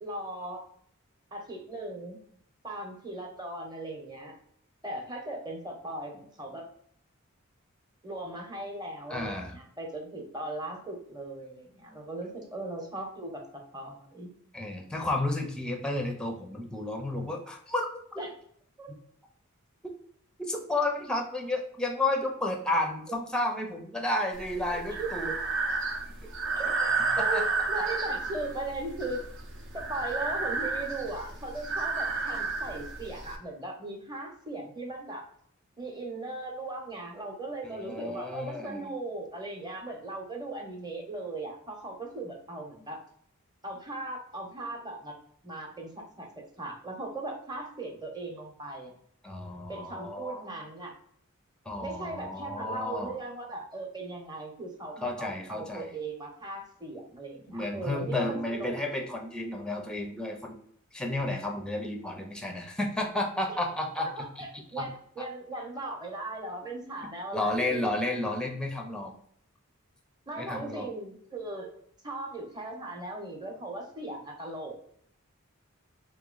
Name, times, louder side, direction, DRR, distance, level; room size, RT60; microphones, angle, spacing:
voice 1, 0.0-0.6 1.3-2.2 2.6-4.3 4.8-6.6 8.0-14.3 18.2-18.3 18.8-18.9 24.7-25.1 26.6-26.7 27.2-29.3 29.7-35.2 35.8-43.0 43.6-45.1 45.4-48.9 49.7-50.9 51.8-58.7 64.0-67.9 70.3-71.7 72.0-74.8, right 2 dB, 20° right, 1 dB, 0.8 m, -38 dB
voice 2, 9.1-9.6 14.5-18.2 20.4-25.3 26.2-26.3 27.1-27.4 37.6-38.9 49.2-50.4 51.7-53.1 55.0-55.9 57.5-60.6 60.9-64.1 64.4-64.5 64.8-64.9 65.2-65.3 67.3-69.1 70.4-70.9, left 2 dB, 5° left, 3 dB, 0.5 m, -32 dB
Breathing, 24.3-33.4, right 4 dB, 60° right, 0.7 m, -31 dB
3.1 x 3.0 x 3.8 m, 0.63 s
head